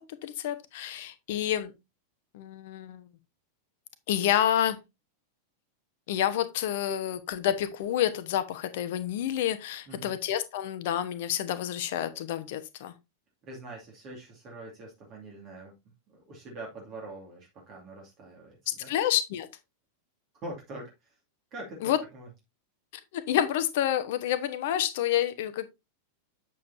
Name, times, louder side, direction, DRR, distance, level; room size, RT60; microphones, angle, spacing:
voice 1, 0.2-1.7 2.3-3.1 4.1-4.8 6.1-12.9 18.7-19.5 21.8-22.0 23.1-25.7, left 11 dB, 50° left, 1.0 m, -28 dB
voice 2, 13.5-15.7 16.3-18.9 20.4-21.2 21.5-22.3, right 2 dB, 35° right, 2.4 m, -44 dB
8.1 x 7.4 x 2.7 m
figure-of-eight pair, 90°, 0 cm